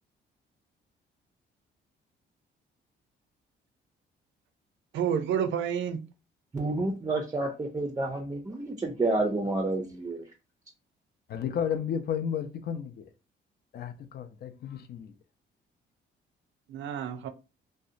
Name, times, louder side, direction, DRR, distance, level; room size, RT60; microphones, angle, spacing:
voice 1, 4.9-6.0 16.7-17.3, right 8 dB, 70° right, 0.5 m, -29 dB
voice 2, 6.5-10.2, right 2 dB, 15° right, 0.4 m, -29 dB
voice 3, 11.3-13.0 13.7-15.1, left 8 dB, 55° left, 0.5 m, -32 dB
2.7 x 2.1 x 2.5 m
cardioid pair, 90°, 20 cm